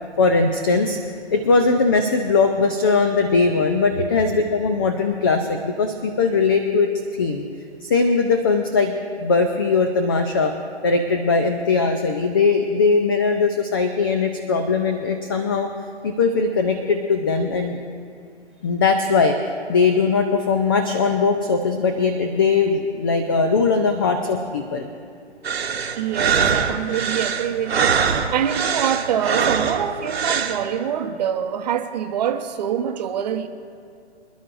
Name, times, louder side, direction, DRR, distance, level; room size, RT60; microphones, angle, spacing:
voice 1, 0.2-1.0 1.3-7.4 7.8-10.5 10.8-15.7 16.0-17.8 18.6-19.4 19.7-24.9, left 4 dB, 20° left, 6 dB, 0.4 m, -20 dB
sound 1, 25.4-30.6, right 6 dB, 65° right, 1.2 m, -23 dB
voice 2, 26.0-33.5, right 8 dB, 35° right, 7 dB, 0.9 m, -25 dB
27.0 x 11.0 x 2.5 m, 2.3 s
figure-of-eight pair, 140°, 34 cm